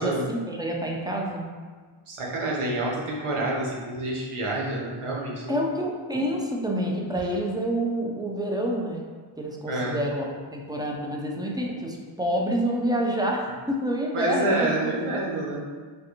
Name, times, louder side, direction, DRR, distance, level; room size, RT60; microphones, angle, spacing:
voice 1, 0.0-1.4 5.5-9.0 9.4-14.9, right 1 dB, 10° right, -1 dB, 0.5 m, -28 dB
voice 2, 2.1-5.6 9.7-10.0 14.1-15.7, right 2 dB, 80° right, -4 dB, 0.9 m, -28 dB
3.4 x 2.5 x 2.9 m, 1.5 s
cardioid pair, 45°, 50 cm